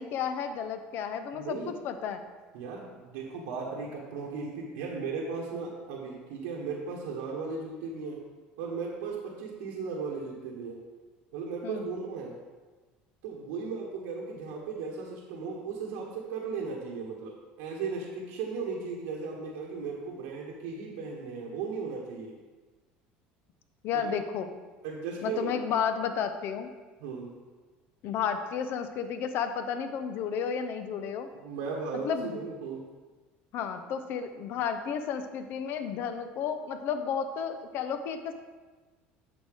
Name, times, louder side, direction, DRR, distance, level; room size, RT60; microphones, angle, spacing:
voice 1, 0.0-2.2 11.6-11.9 23.8-24.5 25.2-26.7 28.0-31.3 32.0-32.4 33.5-38.3, left 7 dB, 60° left, 9 dB, 0.7 m, -32 dB
voice 2, 1.3-1.8 2.5-8.2 8.6-10.8 11.3-12.4 13.2-22.3 24.1-24.2 24.8-25.5 27.0-27.4 31.4-32.8, right 5 dB, 85° right, -4 dB, 1.3 m, -36 dB
8.6 x 6.3 x 3.6 m, 1.3 s
supercardioid pair, 100°, 4 cm